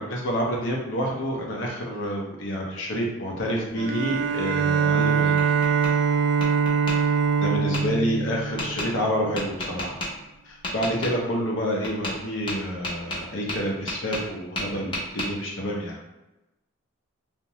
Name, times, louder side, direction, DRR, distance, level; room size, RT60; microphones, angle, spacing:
voice 1, 0.0-5.5 6.9-7.1 7.4-10.0 10.4-16.0, equal, 65° left, -1 dB, 0.6 m, -28 dB
Bowed string instrument, 3.8-9.3, right 6 dB, 55° right, 0.3 m, -23 dB
Tap, 4.9-5.9 6.4-7.0 7.7-7.8 8.6-8.9 9.4-10.1 10.6-11.1 11.8-12.2 12.5-14.3 14.6-15.3, left 1 dB, 25° left, 0.6 m, -31 dB
2.7 x 2.1 x 2.9 m, 0.98 s
head